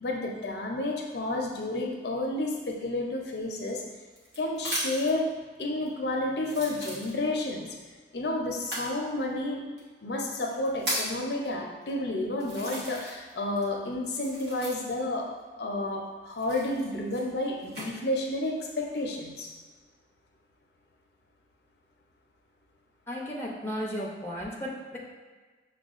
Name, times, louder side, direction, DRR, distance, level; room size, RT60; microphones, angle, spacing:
voice 1, 0.0-3.8 4.4-5.3 5.6-7.7 8.1-9.6 10.0-15.3 15.6-19.5, left 2 dB, 65° left, 0 dB, 0.5 m, -31 dB
sound 1, 3.5-5.2 5.9-6.0 6.4-7.5 8.6-8.9 9.8-9.9 10.4-11.2 11.9-12.0 12.4-13.3 13.6-15.1 16.3-17.9 18.5-19.0, right 1 dB, 65° right, 1.1 m, -36 dB
voice 2, 23.1-25.0, equal, 15° left, -3 dB, 0.5 m, -34 dB
6.1 x 2.2 x 2.4 m, 1.4 s
head